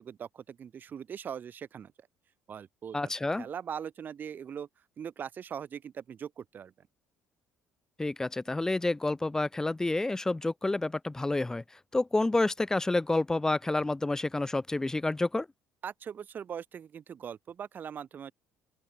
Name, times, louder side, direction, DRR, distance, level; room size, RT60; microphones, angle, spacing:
voice 1, 0.0-2.1 2.5-4.7 5.0-6.9 15.8-18.3, right 8 dB, 45° right, 4.8 m, -41 dB
voice 2, 2.9-3.5 8.0-11.6 11.9-15.5, left 2 dB, 10° left, 2.5 m, -29 dB
open air
cardioid pair, 105°, 5 cm